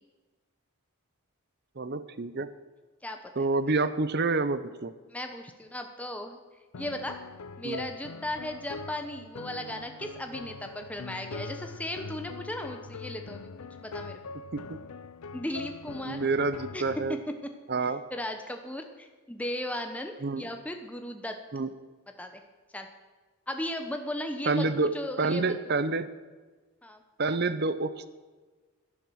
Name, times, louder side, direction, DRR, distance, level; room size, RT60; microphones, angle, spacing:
voice 1, 1.8-2.5 3.4-4.9 7.6-7.9 14.5-14.8 16.1-17.2 17.7-18.0 20.2-20.5 21.5-21.7 24.5-24.9 25.2-26.1 27.2-28.1, right 3 dB, 45° right, 13 dB, 0.7 m, -28 dB
voice 2, 3.0-3.5 5.1-6.4 6.8-7.2 7.6-14.2 15.3-16.2 16.7-16.8 18.1-21.4 22.2-22.4 22.7-22.9 23.5-25.5 26.8-27.0 27.3-27.4, left 1 dB, 5° left, 5 dB, 0.9 m, -36 dB
sound 1, 6.7-17.2, left 4 dB, 85° left, 0.6 m, -42 dB
11.5 x 11.0 x 6.3 m, 1.3 s
head